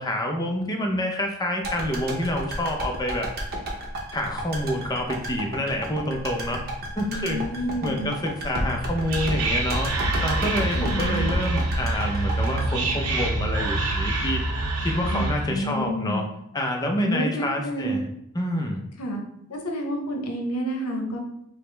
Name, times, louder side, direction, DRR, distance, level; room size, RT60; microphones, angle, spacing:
voice 1, 0.0-3.3 4.1-6.6 7.0-7.4 7.8-9.9 10.2-14.5 14.8-16.3 16.5-18.1 18.3-18.8, left 1 dB, 15° left, 2 dB, 0.4 m, -27 dB
sound 1, 1.6-13.8 14.1-14.2, right 1 dB, 45° right, 0.7 m, -32 dB
voice 2, 7.0-8.1 10.8-11.3 15.1-16.2 17.0-18.1 19.0-19.2 19.5-21.2, equal, 75° left, 2 dB, 0.7 m, -29 dB
Whispering, 8.7-15.6, right 2 dB, 85° right, 0.7 m, -26 dB
4.8 x 2.0 x 3.2 m, 0.76 s
head